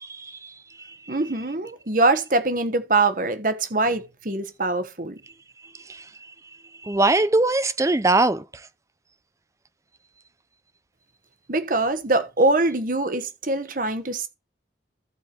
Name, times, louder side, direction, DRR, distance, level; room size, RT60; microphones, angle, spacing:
voice 1, 0.0-1.2 5.9-6.1 6.8-8.4, right 2 dB, 15° right, 0.5 m, -22 dB
voice 2, 1.1-5.2 11.5-14.3, right 2 dB, 45° right, 1.2 m, -23 dB
14.0 x 4.7 x 4.5 m
head